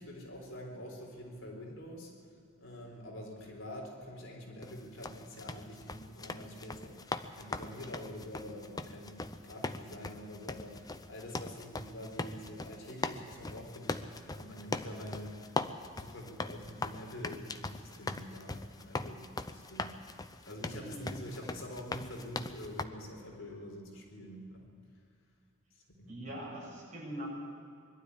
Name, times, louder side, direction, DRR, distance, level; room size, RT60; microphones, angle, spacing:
voice 1, 0.0-15.6 15.9-19.9 20.4-24.7 25.7-26.2, left 1 dB, 65° left, 0 dB, 4.0 m, -46 dB
sound 1, 4.6-22.8, left 3 dB, 20° left, 0.6 m, -40 dB
voice 2, 20.7-21.1 26.1-27.3, right 1 dB, 35° right, -4 dB, 7.5 m, -43 dB
22.0 x 12.5 x 9.8 m, 2.3 s
head